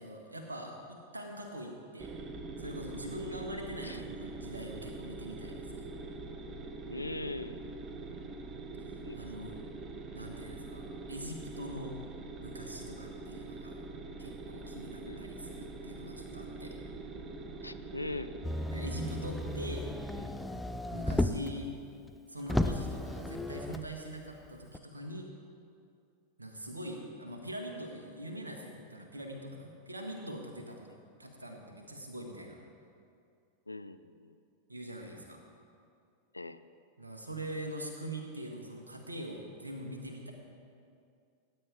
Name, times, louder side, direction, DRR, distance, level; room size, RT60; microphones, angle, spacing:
voice 1, 0.0-2.1 2.6-5.8 9.2-9.6 10.1-11.9 12.4-13.8 14.2-16.7 18.7-19.9 20.9-21.7 22.3-25.3 26.4-30.9 31.2-32.5 34.7-35.4 37.0-40.3, right 1 dB, 80° right, 2 dB, 1.6 m, -43 dB
sound 1, 2.0-20.3, right 3 dB, 25° right, 0.9 m, -44 dB
voice 2, 6.9-7.7 9.0-9.2 15.1-15.2 17.6-18.4 33.7-34.4 36.3-36.6, left 2 dB, 85° left, 12 dB, 0.4 m, -41 dB
Motor vehicle (road), 18.4-21.6 22.1-22.2 22.5-23.9 24.7-24.8, left 1 dB, 5° left, 0.5 m, -34 dB
18.0 x 9.6 x 3.5 m, 2.5 s
figure-of-eight pair, 90°, 0 cm